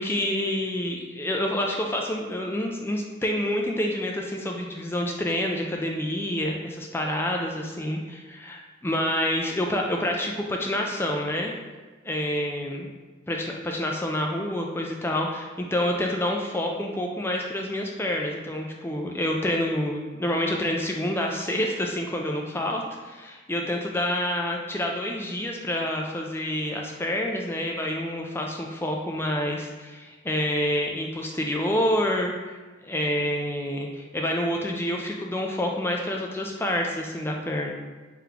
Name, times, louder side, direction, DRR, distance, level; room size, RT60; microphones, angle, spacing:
voice 1, 0.0-11.5 12.0-12.9 13.3-32.3 32.8-37.7, left 1 dB, 10° left, 1 dB, 0.3 m, -28 dB
3.7 x 3.5 x 2.9 m, 1.3 s
head